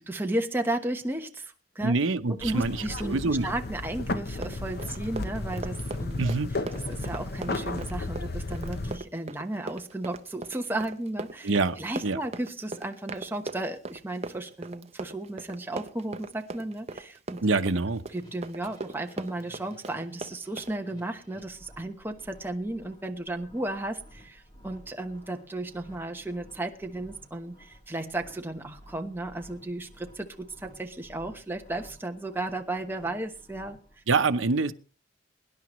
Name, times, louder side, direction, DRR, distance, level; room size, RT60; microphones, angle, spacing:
voice 1, 0.1-1.9 2.4-6.2 6.9-17.4 18.1-33.8, right 1 dB, 10° right, 4 dB, 1.1 m, -34 dB
voice 2, 1.8-3.5 6.2-6.5 11.4-11.8 12.0-12.2 17.4-18.0 34.1-34.7, right 3 dB, 80° right, 9 dB, 0.9 m, -25 dB
sound 1, 2.4-9.0, left 2 dB, 50° left, 0.8 m, -34 dB
Run, 4.3-20.8, right 3 dB, 35° right, 0.7 m, -39 dB
sound 2, 18.1-34.0, equal, 20° left, 3.4 m, -54 dB
24.0 x 10.5 x 3.1 m, 0.37 s
head